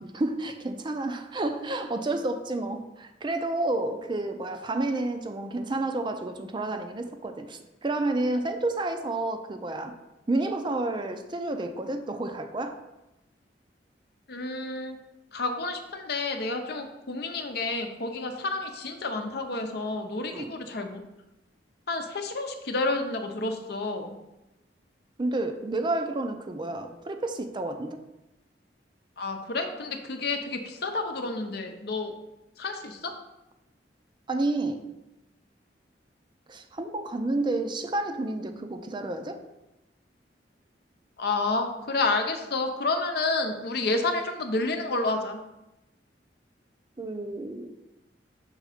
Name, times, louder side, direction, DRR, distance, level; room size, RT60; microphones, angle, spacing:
voice 1, 0.0-10.0 10.3-12.8 20.3-20.5 25.2-28.0 34.3-34.9 36.5-39.4 47.0-47.7, right 2 dB, 25° right, 7 dB, 0.5 m, -30 dB
voice 2, 14.3-15.0 15.3-21.0 21.9-24.1 29.2-32.1 32.6-33.1 41.2-45.4, left 3 dB, 65° left, 5 dB, 0.7 m, -30 dB
6.3 x 3.7 x 5.0 m, 0.96 s
head